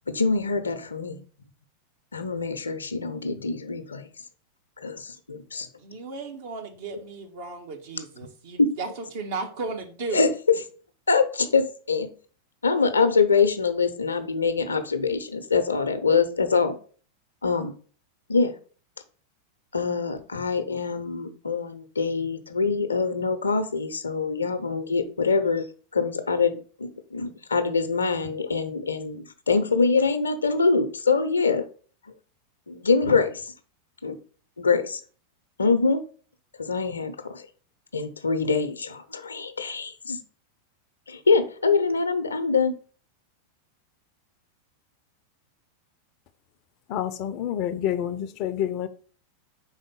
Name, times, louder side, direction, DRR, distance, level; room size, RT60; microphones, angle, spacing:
voice 1, 0.1-1.2 2.1-4.1 4.8-5.7 8.6-8.8 10.1-10.3 11.1-12.1 12.6-16.8 17.4-17.7 18.3-18.5 19.7-25.7 25.9-31.6 32.7-33.5 34.0-34.2 34.6-35.0 35.6-36.0 36.6-37.5 37.9-40.2 41.1-42.7, left 4 dB, 75° left, 0.7 m, -24 dB
voice 2, 5.8-8.9 9.1-10.3, right 4 dB, 55° right, 1.4 m, -35 dB
voice 3, 46.9-48.9, left 10 dB, 40° left, 0.6 m, -28 dB
4.8 x 3.8 x 5.4 m
figure-of-eight pair, 90°, 0 cm